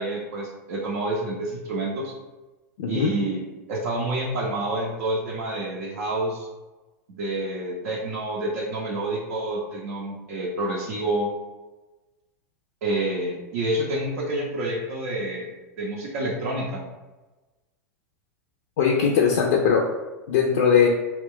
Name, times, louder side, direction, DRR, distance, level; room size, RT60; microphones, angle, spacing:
voice 1, 0.0-2.1 2.9-3.4 3.7-6.5 7.1-11.3 12.8-16.8, right 1 dB, 65° right, -4 dB, 0.5 m, -28 dB
voice 2, 2.8-3.1 18.8-19.8 20.3-20.9, left 7 dB, 60° left, -1 dB, 0.4 m, -20 dB
2.3 x 2.2 x 3.6 m, 1.2 s
figure-of-eight pair, 90°, 9 cm